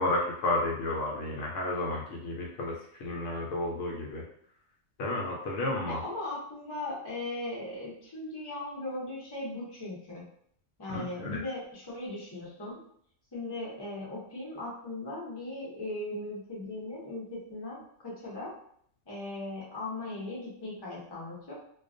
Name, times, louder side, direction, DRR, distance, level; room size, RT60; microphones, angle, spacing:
voice 1, 0.0-2.7 3.0-4.2 5.0-6.0 10.9-11.4, left 2 dB, 70° left, -2 dB, 0.9 m, -31 dB
voice 2, 5.9-10.2 10.8-12.8 13.3-18.5 19.1-21.5, left 2 dB, 25° left, -5 dB, 0.6 m, -38 dB
2.3 x 2.2 x 2.5 m, 0.65 s
omnidirectional pair, 1.4 m